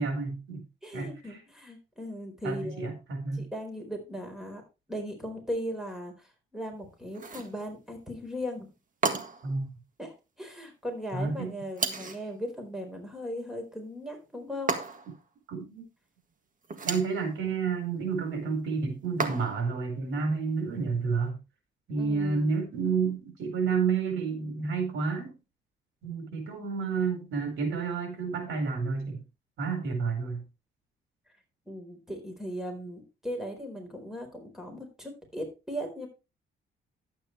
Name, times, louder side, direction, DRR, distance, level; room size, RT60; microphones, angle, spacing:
voice 1, 0.0-0.6 0.9-1.4 2.4-3.4 9.4-9.7 11.1-11.5 15.5-15.8 16.8-21.4 21.9-25.3 26.0-29.2 29.6-30.4, right 5 dB, 75° right, 5 dB, 4.7 m, -30 dB
voice 2, 0.8-2.9 3.3-4.6 4.9-8.7 10.0-10.1 10.4-14.7 17.5-17.6 22.0-22.5 31.7-36.1, equal, ahead, 3 dB, 4.3 m, -38 dB
sound 1, 7.1-7.6 9.0-9.5 11.8-12.3 14.7-15.2 16.6-17.2 19.2-19.7, right 4 dB, 40° right, 1.8 m, -32 dB
11.5 x 8.9 x 3.3 m, 0.28 s
cardioid pair, 90°, 20 cm